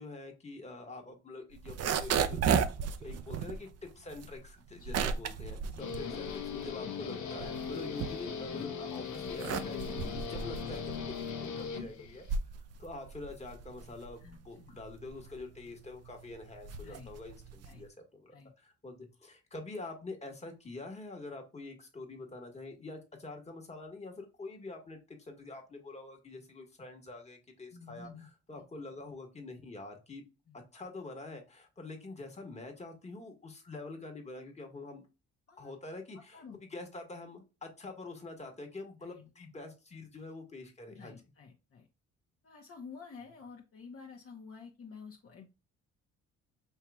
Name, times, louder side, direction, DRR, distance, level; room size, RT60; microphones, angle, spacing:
voice 1, 0.0-2.4 3.0-12.3 12.8-28.1 28.5-30.2 30.7-35.0 35.6-36.4 36.7-41.1, left 2 dB, 20° left, 2 dB, 1.5 m, -46 dB
sound 1, 1.5-6.8 7.2-8.6 9.1-17.9, right 6 dB, 55° right, 0.6 m, -35 dB
voice 2, 4.8-5.2 5.7-6.0 11.8-11.9 14.2-14.8 16.8-17.1 17.6-17.8 18.3-18.5 27.7-28.6 30.5-30.6 35.5-35.7 36.1-36.6 39.0-39.3 40.9-41.9 42.4-45.5, left 5 dB, 45° left, 0 dB, 1.0 m, -50 dB
Guitar, 5.8-12.4, left 6 dB, 75° left, 1.0 m, -39 dB
5.6 x 3.0 x 2.3 m, 0.28 s
cardioid pair, 90°, 30 cm